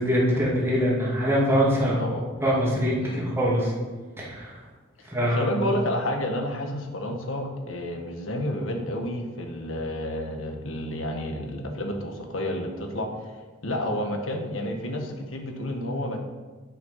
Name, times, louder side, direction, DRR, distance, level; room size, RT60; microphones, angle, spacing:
voice 1, 0.0-2.0 2.4-3.7 4.2-4.6 5.1-5.7, equal, 15° right, -5 dB, 2.6 m, -23 dB
voice 2, 5.2-13.4 13.6-16.2, left 1 dB, 90° left, 3 dB, 1.5 m, -30 dB
10.5 x 6.1 x 5.7 m, 1.3 s
head